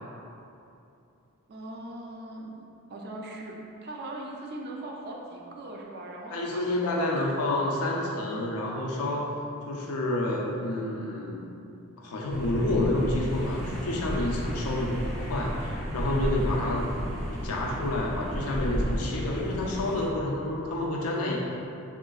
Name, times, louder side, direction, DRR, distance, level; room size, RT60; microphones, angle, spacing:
voice 1, 1.5-2.6 2.9-7.1 7.6-7.7 8.2-8.3 16.2-16.4, right 2 dB, 45° right, 0 dB, 0.3 m, -40 dB
voice 2, 6.3-9.3 9.6-11.5 12.0-16.9 17.4-21.4, left 1 dB, 80° left, -2 dB, 0.5 m, -29 dB
sound 1, 12.3-20.1, equal, ahead, 0.6 m, -33 dB
3.7 x 2.4 x 2.3 m, 2.7 s
head